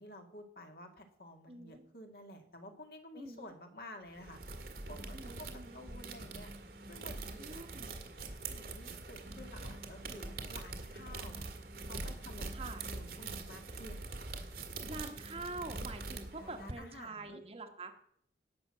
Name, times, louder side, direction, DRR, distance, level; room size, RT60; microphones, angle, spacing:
voice 1, 0.0-4.4 4.9-6.5 6.9-7.7 8.5-11.5 11.8-14.1 16.3-17.4, left 1 dB, 55° left, 4 dB, 2.0 m, -52 dB
voice 2, 1.5-1.8 3.1-3.5 5.1-5.8 7.4-7.9 12.5-12.8 14.9-17.9, right 3 dB, 35° right, 5 dB, 1.3 m, -45 dB
sound 1, 4.1-16.7, right 3 dB, 60° right, 1.7 m, -44 dB
17.5 x 6.2 x 7.4 m, 0.70 s
head